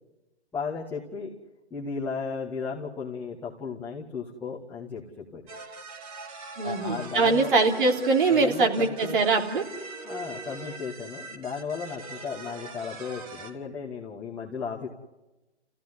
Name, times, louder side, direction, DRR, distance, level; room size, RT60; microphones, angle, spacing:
voice 1, 0.5-1.3 1.7-5.5 6.6-7.5 8.2-9.2 10.0-14.9, left 5 dB, 5° left, -7 dB, 1.8 m, -35 dB
sound 1, 5.5-13.5, right 3 dB, 35° right, 3.5 m, -41 dB
voice 2, 6.6-9.6, right 3 dB, 50° right, 3 dB, 3.8 m, -23 dB
29.5 x 16.0 x 9.8 m, 1.1 s
hypercardioid pair, 150°, 34 cm